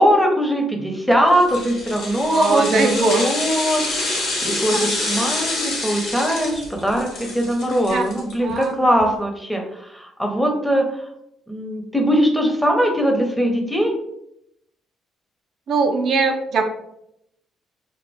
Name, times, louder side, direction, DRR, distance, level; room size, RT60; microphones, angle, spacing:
voice 1, 0.0-11.1 11.5-13.9, equal, 5° left, 2 dB, 0.7 m, -21 dB
sound 1, 1.3-8.6 9.0-9.1, left 2 dB, 75° left, 1.0 m, -27 dB
voice 2, 2.3-3.3 4.1-4.2 4.7-4.8 7.7-8.0 8.4-9.0 15.7-16.6, right 4 dB, 60° right, 4 dB, 0.4 m, -21 dB
2.3 x 2.1 x 3.2 m, 0.77 s
hypercardioid pair, 55°, 0 cm